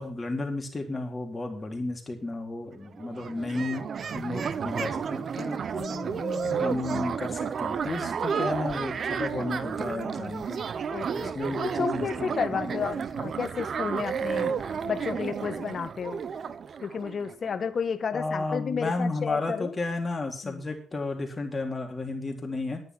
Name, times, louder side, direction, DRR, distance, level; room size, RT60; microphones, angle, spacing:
voice 1, 0.0-3.9 4.1-5.6 6.6-10.6 11.1-12.9 18.1-22.8, left 2 dB, 25° left, 2 dB, 4.0 m, -33 dB
sound 1, 2.7-2.8 3.0-17.6, right 6 dB, 55° right, 1.0 m, -32 dB
voice 2, 5.7-6.8 10.9-11.3 11.6-16.2 16.8-19.7 20.4-20.6, left 6 dB, 50° left, 10 dB, 1.6 m, -32 dB
11.0 x 9.7 x 6.1 m, 0.42 s
cardioid pair, 70°, 0 cm